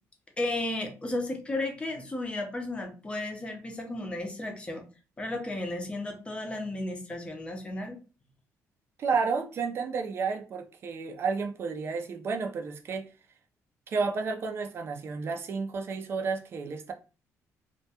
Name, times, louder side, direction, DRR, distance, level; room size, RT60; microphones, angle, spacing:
voice 1, 0.4-4.8 5.2-8.0, left 2 dB, 20° left, 0.5 m, -34 dB
voice 2, 9.0-13.1 13.9-16.9, right 5 dB, 45° right, 0.4 m, -31 dB
2.2 x 2.2 x 2.7 m
cardioid pair, 125°, 6 cm